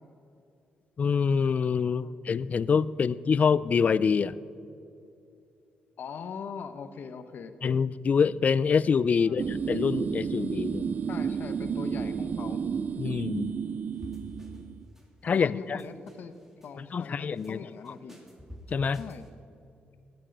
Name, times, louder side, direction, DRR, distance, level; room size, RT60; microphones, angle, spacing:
voice 1, 1.0-4.4 7.6-11.0 13.0-13.5 15.2-15.8 16.9-17.6 18.7-19.0, left 6 dB, 45° left, 19 dB, 0.4 m, -25 dB
voice 2, 6.0-7.6 9.2-9.6 11.1-12.6 15.3-18.2 19.0-19.2, left 6 dB, 65° left, 10 dB, 0.9 m, -41 dB
sound 1, 9.4-14.8, right 6 dB, 55° right, 0.4 m, -32 dB
sound 2, 14.0-14.7 14.9-15.4 15.8-16.7 17.0-17.5 17.8-19.3, left 1 dB, 10° right, 2.7 m, -48 dB
17.0 x 10.5 x 5.3 m, 2.6 s
cardioid pair, 75°, 3 cm